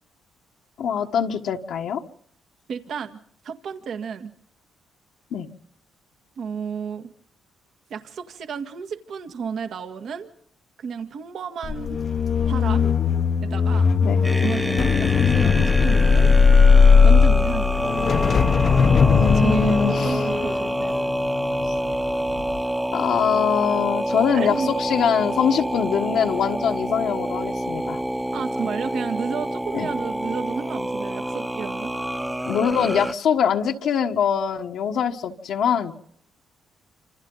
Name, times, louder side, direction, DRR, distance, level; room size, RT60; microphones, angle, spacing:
voice 1, 0.8-2.0 5.3-5.5 14.0-14.2 19.1-20.2 22.9-28.0 29.7-29.9 32.4-35.9, left 7 dB, 75° left, 2 dB, 1.5 m, -23 dB
voice 2, 2.7-3.2 3.4-4.3 6.4-7.1 7.9-10.3 10.8-12.0 12.5-12.9 13.4-13.9 14.4-16.3 17.0-17.8 19.3-21.0 24.3-24.8 28.3-31.9, right 6 dB, 65° right, 7 dB, 1.9 m, -32 dB
sound 1, 11.6-21.9 22.3-22.6, left 5 dB, 50° left, 0.9 m, -18 dB
sound 2, 14.2-33.1, right 1 dB, 5° right, 1.0 m, -27 dB
27.0 x 26.5 x 4.0 m, 0.66 s
cardioid pair, 90°, 0 cm